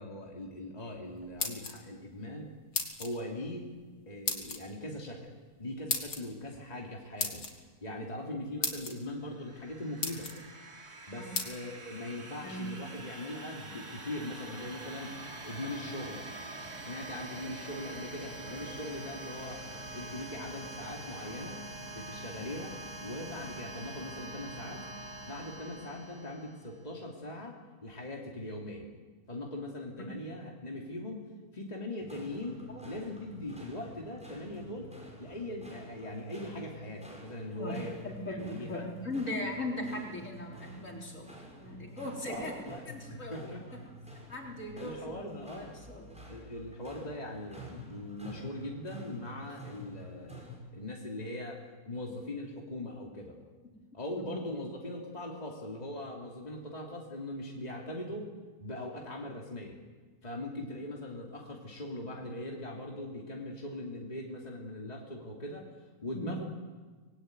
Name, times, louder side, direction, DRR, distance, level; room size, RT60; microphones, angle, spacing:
voice 1, 0.0-2.5 3.0-3.7 4.1-5.2 5.6-7.5 7.8-10.3 11.1-15.1 15.4-16.2 16.8-19.6 19.9-21.6 21.9-24.8 25.2-28.9 29.3-31.2 31.5-32.6 32.8-34.9 35.2-38.0 38.3-38.8 42.2-42.8 43.1-43.6 44.7-45.8 46.2-51.6 51.9-53.4 53.9-58.3 58.6-59.8 60.2-65.7 66.0-66.5, left 1 dB, 25° left, -1 dB, 3.1 m, -40 dB
sound 1, 1.2-2.0 2.7-3.1 4.3-4.6 5.9-6.2 7.2-7.5 8.2-8.3 8.6-8.9 9.6-9.7 10.0-10.4 11.3-11.5, left 4 dB, 80° left, 3.2 m, -33 dB
sound 2, 9.2-26.8, right 2 dB, 70° right, 3.6 m, -45 dB
sound 3, 32.0-50.6, equal, 5° right, 6.6 m, -49 dB
voice 2, 38.0-42.6 42.8-43.8 44.3-46.2 53.6-53.7 54.1-54.3 66.1-66.4, left 1 dB, 50° left, 0 dB, 4.6 m, -39 dB
25.0 x 21.5 x 9.5 m, 1.4 s
omnidirectional pair, 1.7 m